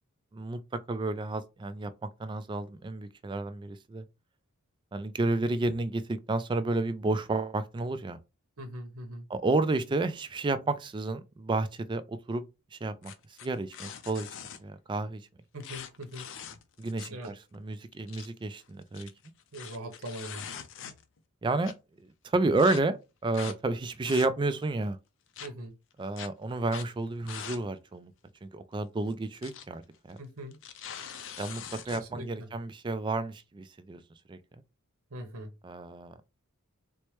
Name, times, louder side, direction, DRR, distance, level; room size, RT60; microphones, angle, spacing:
voice 1, 0.9-4.0 4.9-8.2 9.3-12.4 12.7-13.1 13.4-14.3 14.6-15.2 16.8-19.1 21.4-21.7 22.0-25.0 26.0-28.1 28.4-30.2 31.4-34.0 34.3-34.4 35.6-36.1, right 2 dB, 20° right, 0.3 m, -31 dB
voice 2, 8.6-9.3 15.5-16.3 17.1-17.3 19.5-20.5 25.4-25.7 30.2-30.6 31.9-32.5 35.1-35.5, right 1 dB, 80° right, 0.9 m, -41 dB
sound 1, 13.0-14.6 15.6-17.2 17.5-17.6 17.9-18.3 18.8-21.2 21.6-21.7 22.6-22.8 23.3-23.6 23.9-24.6 25.4-25.5 26.2-26.3 26.7-26.9 27.3-27.6 27.9-28.0 29.1-29.6 29.9-30.1 30.5-32.0, left 8 dB, 60° left, 0.4 m, -43 dB
4.4 x 2.1 x 3.1 m
head